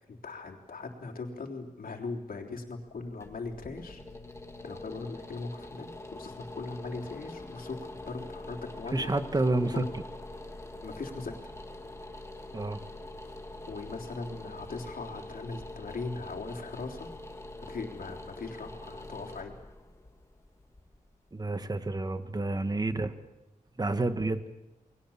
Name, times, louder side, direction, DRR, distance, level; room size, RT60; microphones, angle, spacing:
voice 1, 0.1-4.0 4.6-9.1 9.6-10.0 10.8-11.4 13.7-17.1 17.6-19.6, left 3 dB, 85° left, 2 dB, 3.5 m, -39 dB
sound 1, 2.9-21.8, left 2 dB, 20° left, 2.2 m, -44 dB
voice 2, 8.9-9.8 12.5-12.8 21.3-23.1 23.8-24.4, right 2 dB, 25° right, 9 dB, 1.6 m, -29 dB
29.5 x 21.0 x 7.3 m, 1.0 s
wide cardioid pair, 100°, 14 cm